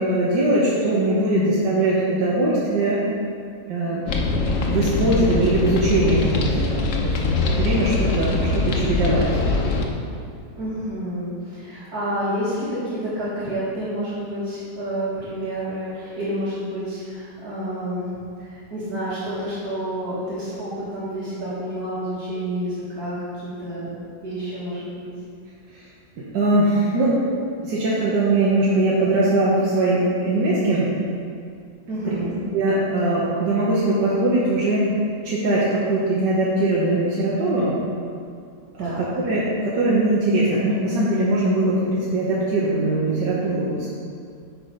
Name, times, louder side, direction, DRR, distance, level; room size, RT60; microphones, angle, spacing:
voice 1, 0.0-3.0 3.7-4.0 4.5-7.1 7.5-9.3 11.7-11.8 25.7-25.9 26.2-27.2 27.6-30.9 32.1-32.2 32.5-34.9 35.2-37.7 38.7-38.9 39.2-43.9, right 2 dB, 90° right, -7 dB, 1.8 m, -21 dB
sound 1, 4.1-9.9, left 3 dB, 55° left, 1.0 m, -22 dB
voice 2, 10.6-18.1 18.4-23.2 23.4-25.1 31.9-32.3 38.8-39.1, right 1 dB, 60° right, -12 dB, 2.4 m, -29 dB
9.2 x 4.6 x 5.2 m, 2.3 s
omnidirectional pair, 1.8 m